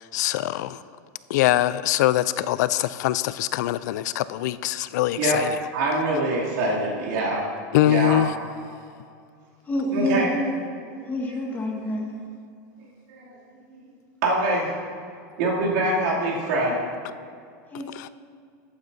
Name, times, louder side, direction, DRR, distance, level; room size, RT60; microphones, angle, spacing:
voice 1, 0.1-0.8 1.3-5.6 7.7-8.3 17.9-18.1, left 14 dB, 70° left, 16 dB, 0.4 m, -23 dB
voice 2, 5.7-7.4 7.8-8.2 9.9-10.3 11.0-11.1 13.1-13.4 13.7-13.8 14.2-14.7 15.4-16.8, right 2 dB, 70° right, -5 dB, 2.7 m, -24 dB
voice 3, 9.7-10.5 11.1-12.1 17.7-17.9, left 1 dB, 20° left, 0 dB, 1.6 m, -27 dB
14.5 x 9.4 x 2.7 m, 2.3 s
supercardioid pair, 150°, 10 cm